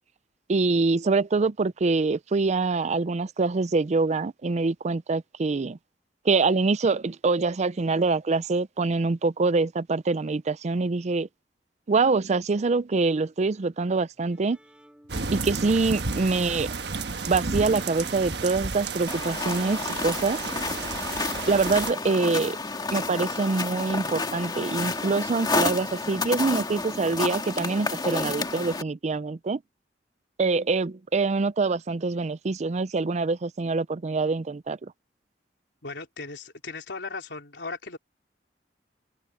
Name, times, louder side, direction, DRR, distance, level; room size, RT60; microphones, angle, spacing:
voice 1, 0.5-5.8 6.2-11.3 11.9-14.6 15.3-16.7 17.3-20.4 21.5-22.6 22.9-29.6 30.4-34.9, right 3 dB, 40° right, 0.5 m, -25 dB
Bowed string instrument, 14.1-20.0, equal, 5° right, 3.1 m, -54 dB
sound 1, 15.1-21.9, right 4 dB, 70° right, 1.3 m, -32 dB
sound 2, 19.1-28.8, left 3 dB, 25° left, 1.8 m, -30 dB
voice 2, 35.8-38.0, left 3 dB, 75° left, 3.9 m, -37 dB
head